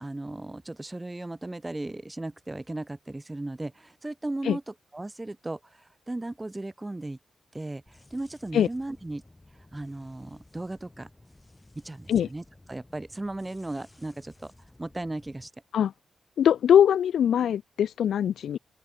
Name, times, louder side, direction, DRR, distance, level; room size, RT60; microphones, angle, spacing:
voice 1, 0.0-7.2 7.5-9.2 9.7-11.1 11.7-14.5 14.8-15.5, right 2 dB, 10° right, 1.6 m, -36 dB
sound 1, 7.9-15.5, left 2 dB, 10° left, 6.1 m, -56 dB
voice 2, 16.4-18.6, left 9 dB, 90° left, 0.9 m, -22 dB
open air
wide cardioid pair, 175°, 0 cm